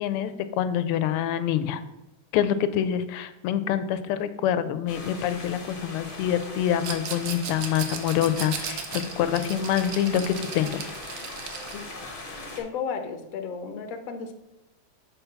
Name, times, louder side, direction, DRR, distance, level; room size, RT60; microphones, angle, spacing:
voice 1, 0.0-1.8 2.3-10.8, left 10 dB, 90° left, 13 dB, 1.5 m, -26 dB
sound 1, 4.9-12.6, left 2 dB, 30° left, 1.1 m, -40 dB
Rattle, 6.8-11.9, right 7 dB, 65° right, 1.3 m, -36 dB
voice 2, 12.6-14.3, left 6 dB, 60° left, 6 dB, 0.9 m, -33 dB
6.9 x 4.0 x 5.7 m, 0.88 s
omnidirectional pair, 2.4 m